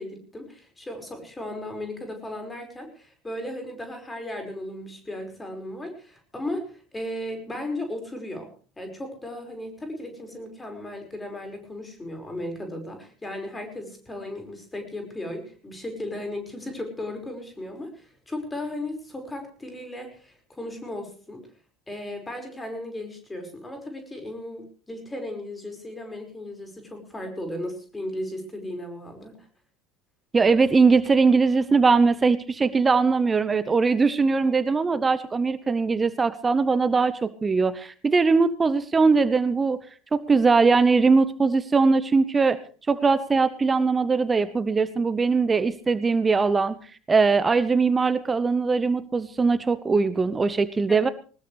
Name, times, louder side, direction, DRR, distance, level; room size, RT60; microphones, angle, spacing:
voice 1, 0.0-8.5 8.8-21.4 21.9-29.5 50.9-51.1, left 1 dB, 15° left, 4 dB, 5.4 m, -36 dB
voice 2, 30.3-39.8 40.1-42.6 42.9-46.8 47.1-51.1, right 4 dB, 20° right, 16 dB, 0.8 m, -21 dB
20.5 x 19.5 x 3.4 m, 0.39 s
figure-of-eight pair, 70°, 0 cm